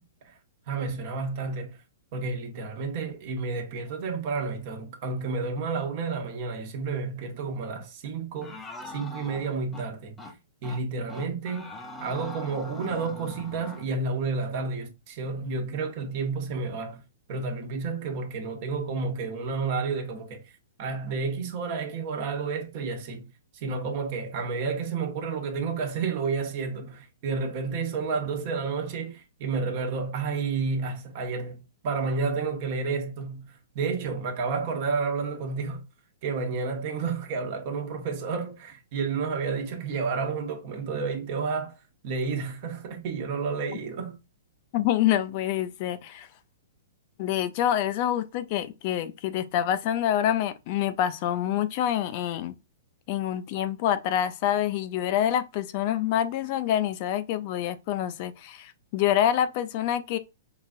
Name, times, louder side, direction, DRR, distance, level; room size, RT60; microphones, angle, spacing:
voice 1, 0.7-1.8 2.1-10.2 10.6-11.7 12.0-17.0 17.3-20.5 20.8-23.2 23.5-31.6 31.8-35.8 36.2-41.7 42.0-44.2, right 4 dB, 45° right, 1.0 m, -31 dB
sound 1, 8.4-9.9 10.2-10.3 10.6-10.8 11.1-13.9, left 2 dB, 15° left, 0.7 m, -42 dB
voice 2, 44.7-46.3 47.2-52.5 53.1-60.2, left 11 dB, 45° left, 0.4 m, -26 dB
4.8 x 2.4 x 2.5 m
hypercardioid pair, 130°, 0 cm